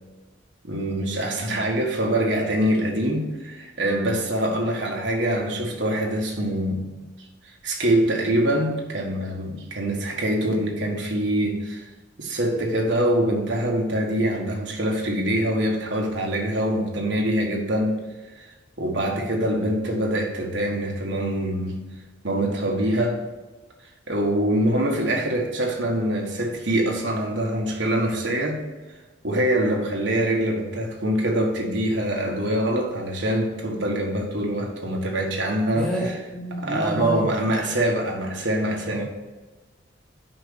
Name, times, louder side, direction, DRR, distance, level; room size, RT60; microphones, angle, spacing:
voice 1, 0.6-7.0 7.6-11.9 12.2-18.0 18.4-18.5 18.8-21.8 22.2-23.2 24.1-28.6 29.2-35.9 36.6-39.0, right 1 dB, 65° right, 0 dB, 1.6 m, -24 dB
voice 2, 35.7-37.3 38.9-39.0, equal, 5° left, -2 dB, 1.3 m, -29 dB
6.0 x 5.5 x 6.9 m, 1.2 s
head